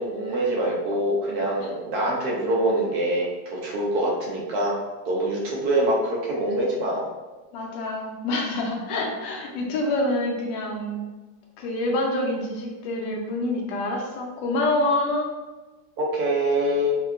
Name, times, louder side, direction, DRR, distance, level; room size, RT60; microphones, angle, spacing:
voice 1, 0.0-4.8 5.1-7.1 16.0-17.0, right 1 dB, 70° right, -3 dB, 1.0 m, -24 dB
voice 2, 7.5-11.0 11.6-15.3, left 2 dB, 85° left, 0 dB, 1.3 m, -26 dB
3.5 x 2.2 x 2.3 m, 1.2 s
omnidirectional pair, 1.9 m